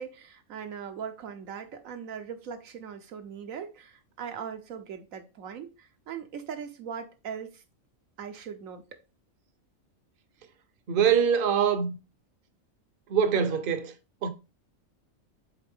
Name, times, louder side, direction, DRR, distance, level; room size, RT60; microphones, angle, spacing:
voice 1, 0.0-7.6 8.2-8.9, right 7 dB, 80° right, 1.3 m, -40 dB
voice 2, 10.9-12.0 13.1-13.9 14.2-14.3, right 7 dB, 50° right, 0.8 m, -24 dB
6.9 x 4.2 x 3.6 m
omnidirectional pair, 1.4 m